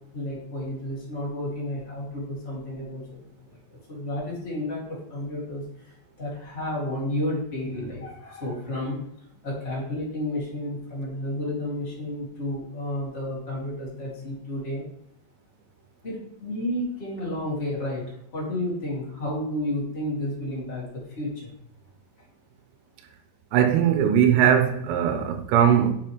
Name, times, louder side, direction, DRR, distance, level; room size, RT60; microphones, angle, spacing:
voice 1, 0.1-3.2 3.4-3.6 3.9-9.0 9.4-14.8 16.0-21.5, left 1 dB, 55° left, 0.6 m, -31 dB
voice 2, 23.5-25.9, right 9 dB, 90° right, 3.5 m, -20 dB
7.7 x 6.8 x 3.1 m
omnidirectional pair, 5.8 m